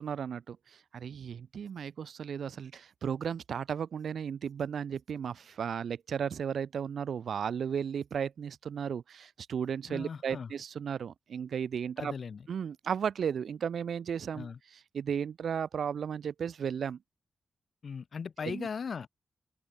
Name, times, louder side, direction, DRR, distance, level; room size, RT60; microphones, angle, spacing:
voice 1, 0.0-12.1 12.5-17.0 18.4-18.7, right 7 dB, 85° right, 3.3 m, -35 dB
voice 2, 9.9-10.5 12.0-12.4 14.4-14.6 17.8-19.1, left 6 dB, 60° left, 7.8 m, -38 dB
open air
wide cardioid pair, 95°, 0 cm